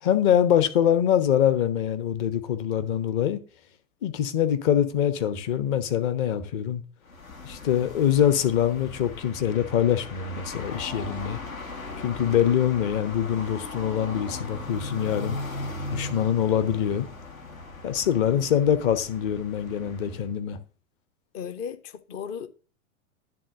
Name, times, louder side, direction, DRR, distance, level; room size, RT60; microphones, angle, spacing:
voice 1, 0.0-3.4 4.0-6.8 7.4-11.4 12.0-15.4 15.9-17.1 17.8-20.6, left 9 dB, 40° left, 1.0 m, -24 dB
sound 1, 7.0-20.3, left 2 dB, 75° left, 1.6 m, -38 dB
voice 2, 18.3-18.6 21.3-22.5, left 7 dB, 15° left, 0.3 m, -36 dB
10.0 x 3.9 x 6.4 m
figure-of-eight pair, 95°, 42 cm